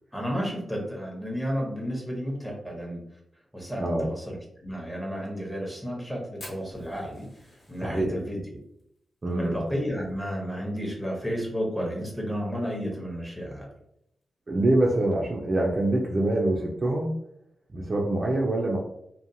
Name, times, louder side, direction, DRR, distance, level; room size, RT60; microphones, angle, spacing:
voice 1, 0.1-3.0 3.5-7.3 7.7-8.4 9.3-13.7, equal, ahead, -2 dB, 0.6 m, -32 dB
Fire, 6.4-10.9 11.1-11.2 11.5-11.6 12.0-12.4 12.9-13.0 14.1-14.2, left 1 dB, 55° left, 1.1 m, -49 dB
voice 2, 7.8-8.1 9.2-9.6 14.5-17.1 17.7-18.8, right 1 dB, 30° right, -2 dB, 0.3 m, -25 dB
2.8 x 2.1 x 2.5 m, 0.76 s
wide cardioid pair, 165°, 0 cm